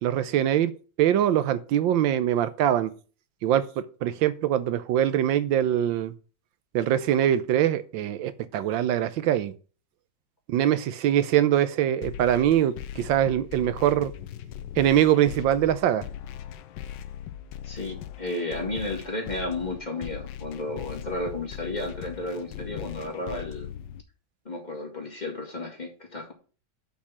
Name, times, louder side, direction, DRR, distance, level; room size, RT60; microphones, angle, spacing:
voice 1, 0.0-0.7 1.0-2.9 3.4-6.1 6.7-9.5 10.5-14.1 14.8-16.0, right 11 dB, 85° right, 14 dB, 1.5 m, -23 dB
sound 1, 12.0-24.0, left 10 dB, 80° left, 1.3 m, -39 dB
voice 2, 17.6-23.7 24.5-26.3, left 2 dB, 25° left, 1 dB, 2.1 m, -33 dB
6.3 x 5.9 x 7.2 m, 0.38 s
omnidirectional pair, 2.0 m